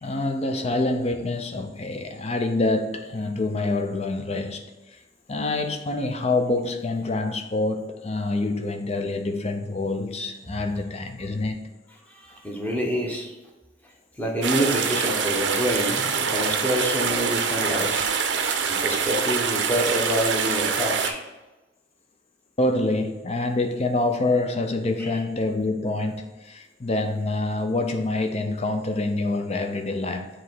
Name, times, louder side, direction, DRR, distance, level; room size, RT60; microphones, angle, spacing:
voice 1, 0.0-4.7 5.3-11.6 22.6-30.3, left 2 dB, 35° left, 0.6 m, -26 dB
voice 2, 12.1-13.3 14.2-18.1 18.8-21.2 25.0-25.1, equal, 10° left, 1.0 m, -27 dB
sound 1, 14.4-21.1, right 6 dB, 85° right, 0.6 m, -25 dB
7.2 x 3.0 x 4.5 m
head